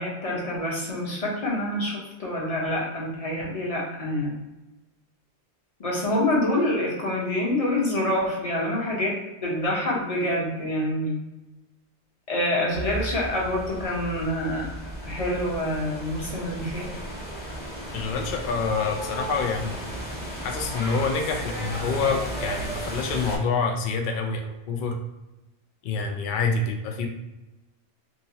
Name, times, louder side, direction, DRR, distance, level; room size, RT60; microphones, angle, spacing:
voice 1, 0.0-4.4 5.8-11.2 12.3-14.7 15.0-16.9, left 1 dB, 35° left, -3 dB, 0.9 m, -26 dB
sound 1, 12.7-23.4, right 1 dB, 10° left, 0.7 m, -34 dB
voice 2, 17.9-19.8 20.4-25.0 25.8-27.1, left 4 dB, 60° left, 4 dB, 0.6 m, -27 dB
2.9 x 2.8 x 2.8 m, 1.0 s
omnidirectional pair, 1.1 m